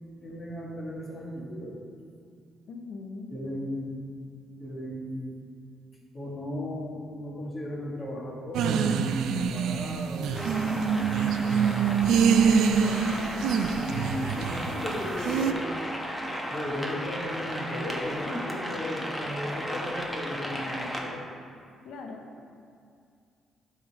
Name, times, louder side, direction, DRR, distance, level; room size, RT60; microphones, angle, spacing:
voice 1, 0.2-1.8 3.3-4.0 4.6-5.4 6.1-12.2 13.8-15.7 16.5-21.2, equal, 30° left, -3 dB, 1.8 m, -36 dB
voice 2, 2.7-3.3 12.8-13.4 21.8-22.2, left 4 dB, 75° left, 3 dB, 0.7 m, -41 dB
sound 1, 8.5-15.5, right 6 dB, 80° right, 0.4 m, -25 dB
sound 2, 10.4-21.0, equal, 5° left, 1.2 m, -35 dB
11.0 x 3.8 x 4.3 m, 2.4 s
cardioid pair, 90°, 0 cm